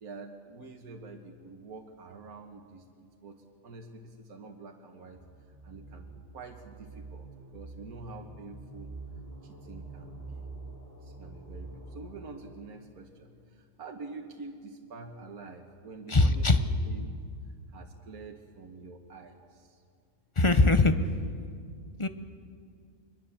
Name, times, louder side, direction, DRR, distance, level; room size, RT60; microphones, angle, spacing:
voice 1, 0.0-5.2 5.6-8.9 9.4-10.4 11.0-17.1 17.7-19.8, right 3 dB, 75° right, 2 dB, 1.8 m, -47 dB
sound 1, 5.1-12.4, right 3 dB, 10° right, 7.4 m, -46 dB
voice 2, 16.1-16.6 20.4-20.9 22.0-22.1, left 2 dB, 25° left, 9 dB, 0.7 m, -21 dB
22.5 x 22.0 x 7.2 m, 2.2 s
omnidirectional pair, 1.6 m